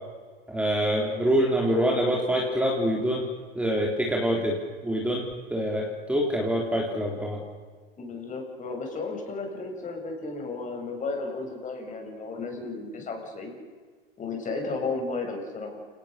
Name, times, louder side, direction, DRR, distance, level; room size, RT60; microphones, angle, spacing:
voice 1, 0.5-3.2 3.5-4.6 4.8-5.2 5.5-7.4, equal, 5° right, -2 dB, 4.2 m, -25 dB
voice 2, 8.0-13.6 14.2-15.9, left 3 dB, 25° left, 2 dB, 7.7 m, -34 dB
29.0 x 19.0 x 7.0 m, 1.5 s
hypercardioid pair, 105°, 30 cm